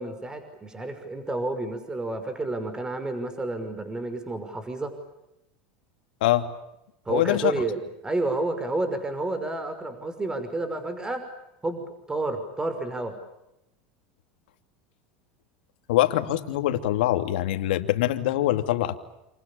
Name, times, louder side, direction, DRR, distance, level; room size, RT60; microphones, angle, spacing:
voice 1, 0.0-4.9 7.1-11.2 11.6-13.2, right 2 dB, 15° right, 9 dB, 5.8 m, -30 dB
voice 2, 7.1-7.5 15.9-19.0, left 14 dB, 80° left, 8 dB, 2.8 m, -24 dB
28.5 x 28.5 x 7.2 m, 0.87 s
supercardioid pair, 105°, 5 cm